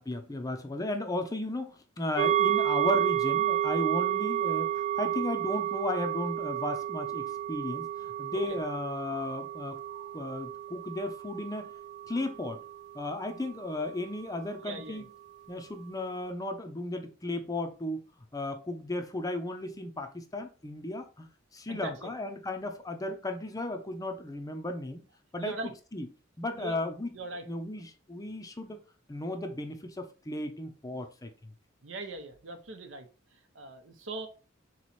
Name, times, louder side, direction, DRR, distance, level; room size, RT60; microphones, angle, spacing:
voice 1, 0.0-11.7 12.1-12.6 12.9-15.1 15.5-25.1 25.3-26.1 26.4-27.1 27.5-28.8 29.1-31.5, left 1 dB, 20° left, 0.5 m, -35 dB
sound 1, 2.2-13.8 14.2-14.3, right 12 dB, 40° right, 0.3 m, -31 dB
voice 2, 14.6-15.1 21.7-22.1 25.4-25.7 26.5-26.9 27.1-27.4 31.8-34.3, right 2 dB, 65° right, 0.8 m, -41 dB
4.0 x 3.1 x 4.1 m
head